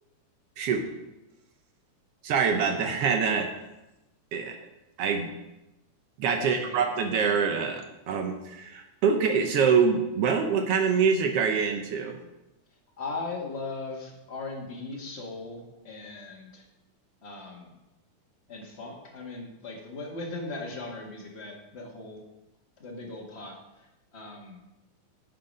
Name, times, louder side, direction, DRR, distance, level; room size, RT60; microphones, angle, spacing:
voice 1, 0.6-0.9 2.2-3.5 4.3-4.6 5.0-5.3 6.2-12.2, right 6 dB, 75° right, 5 dB, 1.4 m, -25 dB
voice 2, 6.4-6.8 13.0-16.7 17.2-17.8 18.5-22.2 22.8-23.9 24.1-24.6, left 3 dB, 30° left, -1 dB, 1.2 m, -38 dB
8.4 x 8.1 x 5.3 m, 0.98 s
omnidirectional pair, 3.6 m